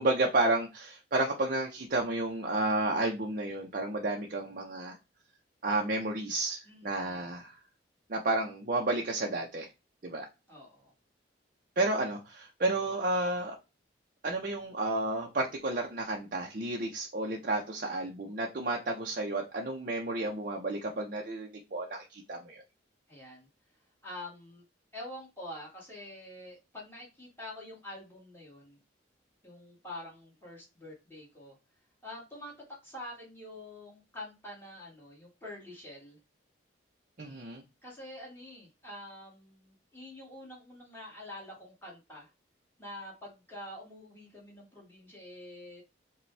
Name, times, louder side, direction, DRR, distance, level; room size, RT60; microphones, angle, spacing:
voice 1, 0.0-5.0 5.6-7.6 8.1-9.7 10.0-10.3 11.8-13.6 14.2-22.6 37.2-37.6, right 2 dB, 45° right, 0 dB, 0.6 m, -31 dB
voice 2, 6.7-7.3 10.5-10.9 23.1-23.5 24.0-24.6 24.9-28.8 29.4-31.6 32.0-32.5 32.8-36.2 37.8-42.3 42.8-45.8, left 1 dB, 10° left, -4 dB, 1.8 m, -46 dB
5.0 x 2.3 x 3.3 m, 0.26 s
head